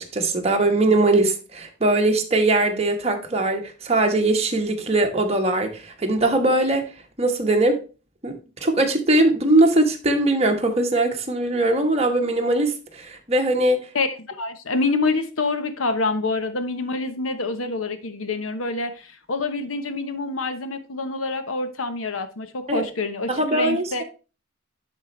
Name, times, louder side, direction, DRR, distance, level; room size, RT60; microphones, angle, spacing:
voice 1, 0.0-6.9 7.2-7.8 8.2-8.4 8.6-13.9 22.7-22.8 23.3-24.0, right 2 dB, 30° right, 3 dB, 1.3 m, -21 dB
voice 2, 13.9-24.0, left 3 dB, 85° left, 10 dB, 1.0 m, -26 dB
11.0 x 4.4 x 3.2 m, 0.33 s
head